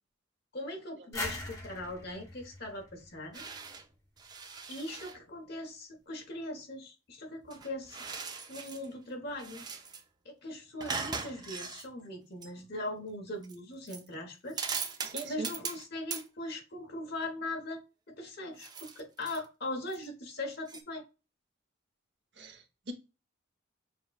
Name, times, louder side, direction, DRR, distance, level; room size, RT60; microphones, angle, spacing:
voice 1, 0.5-3.4 4.7-8.0 8.5-9.6 10.2-14.7 15.2-17.8 18.1-21.0, left 1 dB, 50° left, 2 dB, 1.2 m, -40 dB
sound 1, 1.1-3.8, left 2 dB, 15° left, 1.1 m, -41 dB
sound 2, 3.3-3.9 4.2-5.2 7.4-8.9 9.3-10.0 10.8-11.9 12.4-12.5 13.4-13.6 13.9-14.1 14.5-15.9 16.1-16.3 18.6-19.5 19.9-20.0 20.7-20.8, right 5 dB, 20° right, 0.4 m, -40 dB
voice 2, 15.0-15.5 22.4-22.9, right 2 dB, 55° right, 4 dB, 0.8 m, -41 dB
6.4 x 2.3 x 2.3 m, 0.29 s
head